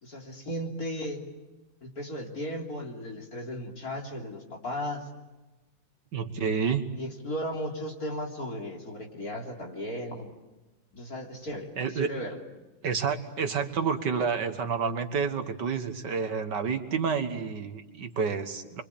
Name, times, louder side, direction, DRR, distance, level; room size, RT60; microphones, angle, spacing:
voice 1, 0.0-1.2 1.8-5.1 7.0-10.3 10.9-12.4, equal, 45° left, 0 dB, 3.9 m, -36 dB
voice 2, 6.1-6.8 11.8-12.1 12.8-18.8, right 6 dB, 60° right, 8 dB, 2.0 m, -29 dB
28.5 x 24.5 x 8.5 m, 1.1 s
omnidirectional pair, 2.1 m